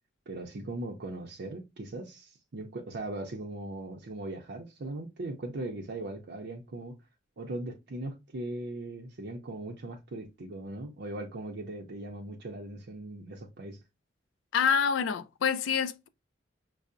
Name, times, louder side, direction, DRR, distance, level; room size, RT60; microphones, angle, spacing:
voice 1, 0.3-7.0 7.4-13.8, right 2 dB, 60° right, 0.5 m, -39 dB
voice 2, 14.5-16.1, left 7 dB, 75° left, 0.3 m, -27 dB
5.4 x 2.0 x 2.5 m
head